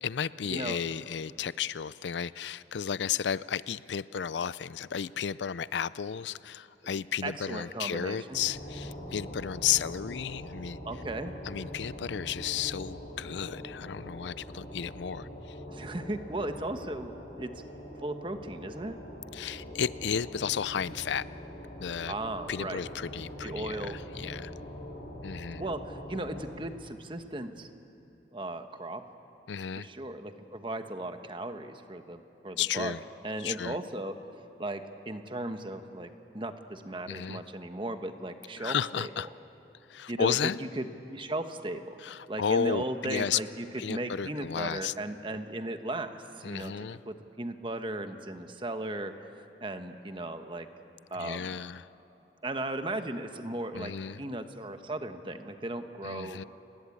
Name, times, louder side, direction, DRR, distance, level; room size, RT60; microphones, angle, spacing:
voice 1, 0.0-10.8 11.4-15.6 19.3-21.3 21.8-22.1 22.5-24.5 25.2-25.6 29.5-29.9 32.6-33.0 33.4-33.8 37.1-37.4 38.6-39.3 39.9-40.6 42.0-43.4 43.8-44.9 46.4-47.0 51.2-51.8 53.7-54.2 56.0-56.4, left 8 dB, 85° left, 18 dB, 0.5 m, -33 dB
voice 2, 7.2-8.4 10.8-11.3 15.7-17.1 17.4-17.5 18.0-19.0 22.1-22.8 23.4-24.0 25.6-27.7 28.3-29.0 29.8-32.9 33.2-34.1 34.6-39.1 40.1-42.0 42.3-46.7 47.0-50.7 51.1-51.5 52.4-56.4, right 1 dB, 30° right, 7 dB, 1.2 m, -36 dB
sound 1, 8.3-26.5, equal, 35° left, 5.3 m, -43 dB
30.0 x 19.5 x 8.6 m, 3.0 s
head